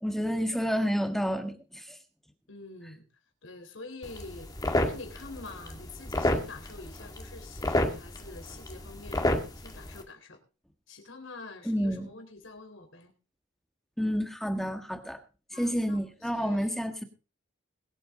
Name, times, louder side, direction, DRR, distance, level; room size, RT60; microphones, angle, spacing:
voice 1, 0.0-1.9 11.6-12.1 14.0-15.2 15.6-17.0, equal, ahead, 1.5 m, -29 dB
voice 2, 2.5-3.0 3.4-9.2 9.6-10.4 10.9-13.1 15.5-16.7, left 3 dB, 80° left, 4.0 m, -46 dB
sound 1, 4.0-10.0, left 1 dB, 20° left, 1.9 m, -31 dB
22.5 x 8.4 x 3.8 m
head